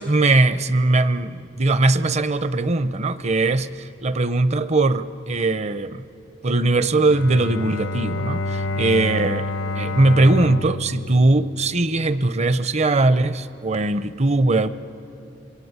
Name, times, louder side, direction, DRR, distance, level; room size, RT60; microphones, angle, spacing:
voice 1, 0.0-6.1 6.4-14.7, right 2 dB, 35° right, 14 dB, 0.7 m, -20 dB
Bowed string instrument, 7.0-12.0, left 2 dB, 90° left, 1.0 m, -29 dB
26.0 x 22.5 x 9.7 m, 2.7 s
head